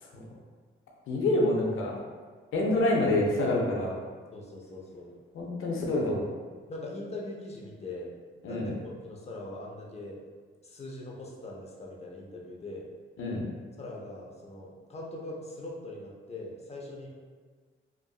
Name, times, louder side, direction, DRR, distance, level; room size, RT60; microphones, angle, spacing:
voice 1, 1.1-2.0 2.5-4.0 5.3-6.2 8.4-8.7 13.2-13.4, left 2 dB, 80° left, -2 dB, 0.6 m, -27 dB
voice 2, 4.3-5.2 6.7-8.1 8.4-10.2 10.6-12.9 13.8-17.1, left 2 dB, 30° left, -2 dB, 0.6 m, -41 dB
2.8 x 2.4 x 2.3 m, 1.5 s
cardioid pair, 75°, 21 cm